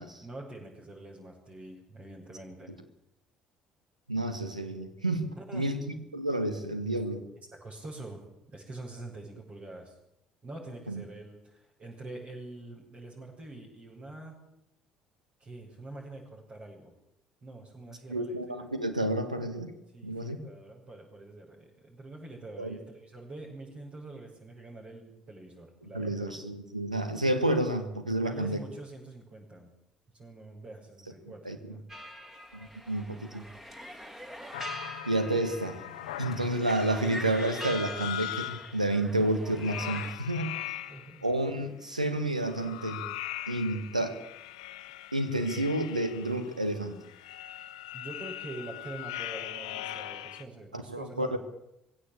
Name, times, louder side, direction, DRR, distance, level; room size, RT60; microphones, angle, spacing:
voice 1, 0.2-2.7 5.4-5.7 7.6-8.2 8.5-10.0 10.4-14.4 15.4-16.9 17.4-18.7 19.9-26.3 28.2-29.7 30.1-31.8 40.9-41.2 47.9-51.3, right 2 dB, 45° right, -6 dB, 6.8 m, -45 dB
voice 2, 4.1-7.2 10.9-11.0 18.1-19.7 20.0-20.4 22.6-22.8 25.9-28.6 31.3-31.8 32.5-33.4 35.1-35.8 36.2-40.5 41.2-43.0 43.5-44.2 45.1-47.0 50.7-51.4, right 1 dB, 90° right, 9 dB, 1.8 m, -30 dB
sound 1, 31.9-40.1, equal, 10° right, 3.6 m, -43 dB
sound 2, 34.5-38.8 39.5-41.2 42.3-50.4, left 14 dB, 70° left, 1.0 m, -40 dB
22.0 x 16.5 x 8.6 m, 0.84 s
figure-of-eight pair, 50°, 4 cm